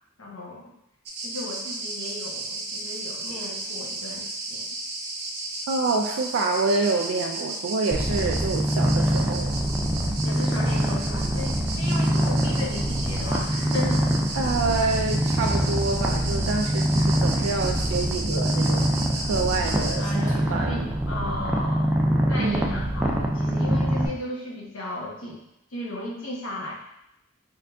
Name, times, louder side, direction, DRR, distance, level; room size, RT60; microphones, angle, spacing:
voice 1, 0.2-0.7 1.2-4.7 10.2-14.1 15.0-15.1 20.0-22.0 22.2-25.4 25.7-26.7, left 1 dB, 80° left, -3 dB, 1.0 m, -35 dB
sound 1, 1.1-20.0, right 2 dB, 55° right, 0.7 m, -34 dB
voice 2, 5.7-9.6 14.3-20.2 20.5-21.0 22.4-22.8, right 3 dB, 85° right, 1 dB, 0.4 m, -27 dB
Purr, 7.9-24.1, equal, 10° right, 0.4 m, -24 dB
4.4 x 3.7 x 2.2 m, 0.79 s
head